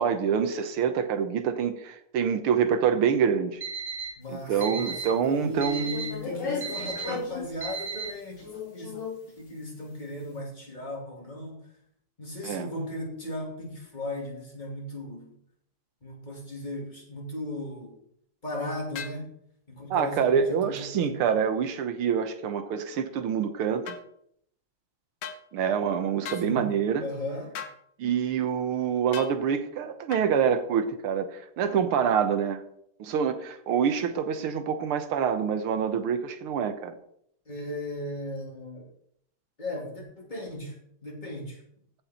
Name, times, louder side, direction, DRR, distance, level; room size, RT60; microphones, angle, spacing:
voice 1, 0.0-3.6 4.3-6.0 7.1-7.2 12.4-12.7 19.9-24.0 25.5-27.1 28.0-32.6 33.0-37.0, right 7 dB, 80° right, 1.9 m, -26 dB
Alarm, 3.6-4.1 4.6-5.1 5.6-6.1 6.6-7.1 7.6-8.1, right 6 dB, 5° right, 3.5 m, -34 dB
voice 2, 4.2-8.4 8.7-9.0 9.4-11.6 12.2-15.4 16.0-18.0 18.4-19.3 19.7-21.2 26.4-26.7 27.0-27.5 37.5-38.9 39.6-40.8 41.0-41.6, left 1 dB, 20° left, 2.7 m, -36 dB
sound 1, 4.3-5.0 5.6-7.9 8.4-9.2, left 4 dB, 55° left, 3.1 m, -36 dB
sound 2, 18.9-19.2 23.9-24.0 25.2-25.4 26.2-26.5 27.5-27.8 29.1-29.3 30.1-30.3, left 7 dB, 70° left, 1.7 m, -37 dB
15.0 x 5.6 x 4.3 m
omnidirectional pair, 2.4 m